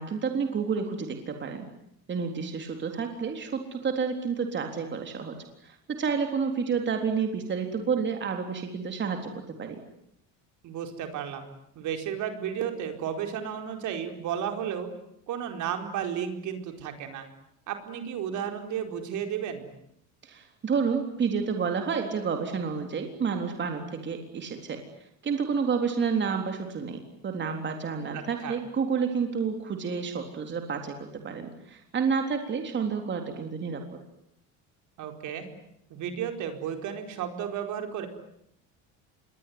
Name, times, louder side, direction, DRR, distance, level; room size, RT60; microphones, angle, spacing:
voice 1, 0.0-1.7 2.1-5.4 5.6-9.8 20.2-24.8 25.2-33.8, right 6 dB, 30° right, 5 dB, 3.7 m, -30 dB
voice 2, 10.6-11.5 11.7-14.9 15.3-17.3 17.7-19.7 28.1-28.5 35.0-35.5 35.9-38.1, right 8 dB, 60° right, 6 dB, 4.7 m, -33 dB
27.0 x 22.0 x 9.7 m, 0.76 s
cardioid pair, 120°, 34 cm